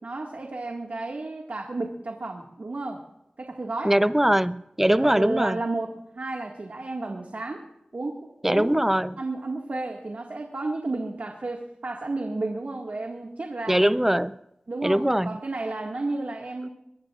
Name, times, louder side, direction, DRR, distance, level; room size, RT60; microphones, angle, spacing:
voice 1, 0.0-3.0 3.4-4.0 4.9-7.6 7.9-8.9 9.2-13.8 14.7-16.7, right 2 dB, 85° right, 1.9 m, -32 dB
voice 2, 3.8-5.6 8.4-9.1 13.7-14.3 14.8-15.4, right 1 dB, 10° right, 0.6 m, -22 dB
24.0 x 19.0 x 2.5 m
wide cardioid pair, 55°, 3 cm